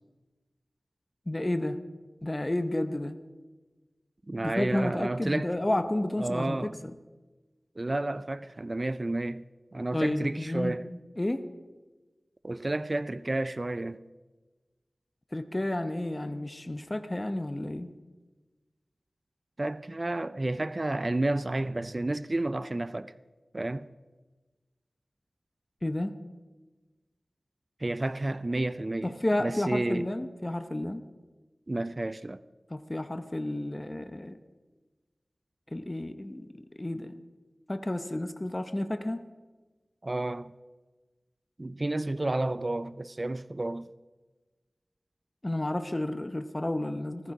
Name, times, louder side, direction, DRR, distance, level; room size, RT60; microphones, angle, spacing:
voice 1, 1.3-1.8 2.2-3.2 4.4-6.7 9.9-10.8 11.2-11.4 15.3-17.9 25.8-26.1 29.0-31.0 32.7-34.4 35.7-36.5 36.8-37.1 37.7-39.2 45.4-47.3, left 1 dB, 25° left, 0.8 m, -31 dB
voice 2, 4.3-5.5 6.2-6.8 7.8-9.4 9.7-10.9 12.4-14.0 19.6-23.1 23.5-23.9 27.8-29.1 29.4-30.1 31.7-32.4 40.0-40.5 41.6-43.9, right 2 dB, 35° right, 0.4 m, -31 dB
14.5 x 14.5 x 4.9 m
wide cardioid pair, 60°, 0 cm